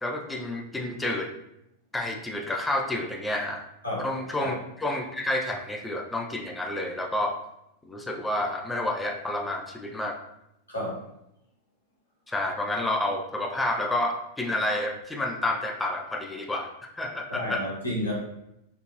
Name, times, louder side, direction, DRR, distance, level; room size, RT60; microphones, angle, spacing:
voice 1, 0.0-1.3 1.9-3.6 4.0-7.4 7.8-10.2 12.3-17.6, left 1 dB, 10° left, 2 dB, 0.5 m, -29 dB
voice 2, 10.7-11.0 17.3-18.1, left 1 dB, 80° left, -5 dB, 1.4 m, -31 dB
4.5 x 2.6 x 3.0 m, 0.84 s
figure-of-eight pair, 90°, 0 cm